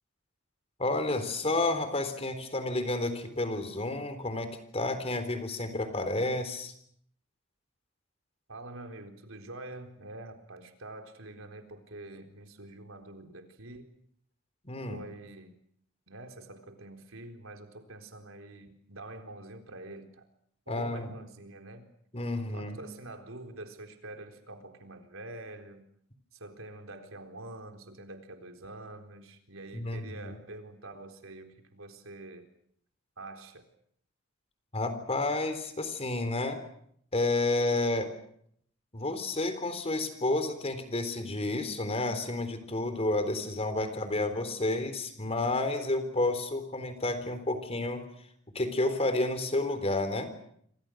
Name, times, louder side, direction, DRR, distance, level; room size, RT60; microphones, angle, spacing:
voice 1, 0.8-6.7 14.6-15.0 20.7-21.1 22.1-22.8 29.7-30.4 34.7-36.6 37.1-38.1 38.9-48.0 48.5-50.3, left 2 dB, 30° left, 10 dB, 3.9 m, -30 dB
voice 2, 8.5-13.9 14.9-15.6 16.1-20.3 20.7-21.9 22.5-25.8 26.3-32.5 33.2-33.7 43.8-43.9, right 2 dB, 80° right, 5 dB, 4.0 m, -46 dB
27.5 x 26.0 x 6.4 m, 0.69 s
head